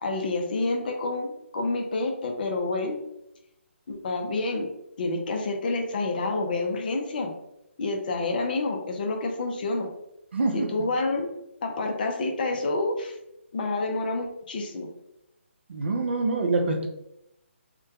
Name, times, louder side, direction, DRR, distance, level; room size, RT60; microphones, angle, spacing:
voice 1, 0.0-3.0 3.9-4.7 5.0-7.3 7.8-9.9 10.5-11.3 11.6-13.1 13.5-14.9, left 2 dB, 45° left, 3 dB, 0.4 m, -28 dB
voice 2, 10.3-10.7 15.7-16.9, right 3 dB, 55° right, 3 dB, 0.4 m, -25 dB
2.2 x 2.1 x 2.6 m, 0.83 s
figure-of-eight pair, 150°, 7 cm